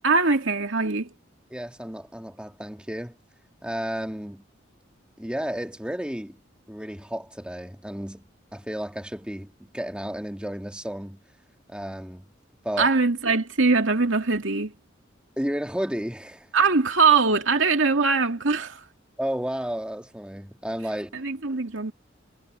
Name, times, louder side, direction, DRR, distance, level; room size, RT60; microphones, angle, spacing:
voice 1, 0.0-1.1 12.8-14.7 16.5-18.9 21.1-21.9, right 4 dB, 75° right, 2.4 m, -22 dB
voice 2, 1.5-3.2 3.6-4.4 5.2-6.4 6.7-11.2 11.7-12.2 12.6-12.9 15.4-16.5 19.2-21.2, equal, 5° right, 1.9 m, -32 dB
head